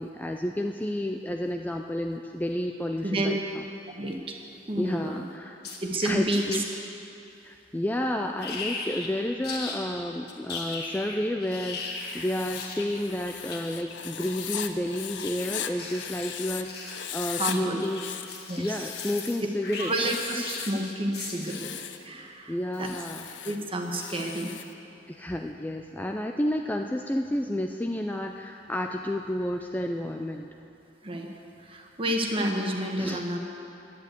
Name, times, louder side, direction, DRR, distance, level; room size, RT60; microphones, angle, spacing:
voice 1, 0.0-3.6 4.8-5.6 6.1-6.6 7.4-18.0 18.6-19.9 22.5-23.3 25.1-30.5 33.0-33.2, left 1 dB, 10° left, 3 dB, 0.4 m, -31 dB
voice 2, 3.9-4.4 4.7-5.2 5.8-6.6 17.4-17.8 18.5-18.9 19.8-21.7 22.0-22.9 23.4-24.5 31.0-31.3 31.6-33.4, right 1 dB, 30° right, 2 dB, 1.3 m, -30 dB
sound 1, 5.6-6.6 8.4-9.1 9.4-9.8 10.3-21.7, left 4 dB, 60° left, 1.7 m, -38 dB
Writing, 11.9-16.6 16.9-17.6 17.9-19.4 19.8-20.8 21.3-22.0 22.7-24.7, left 10 dB, 75° left, 0.6 m, -38 dB
11.0 x 10.0 x 8.3 m, 2.8 s
head